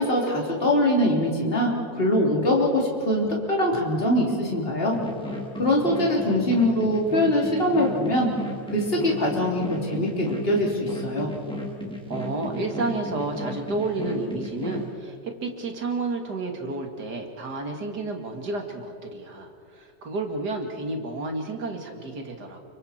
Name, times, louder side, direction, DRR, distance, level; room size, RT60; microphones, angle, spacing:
voice 1, 0.0-5.0 5.5-8.3 8.7-11.3, left 1 dB, 35° left, -2 dB, 3.6 m, -23 dB
sound 1, 4.9-14.9, left 1 dB, 5° left, 2.8 m, -35 dB
voice 2, 12.1-22.6, right 2 dB, 90° right, 3 dB, 2.8 m, -31 dB
29.5 x 25.0 x 4.4 m, 2.4 s
omnidirectional pair, 1.7 m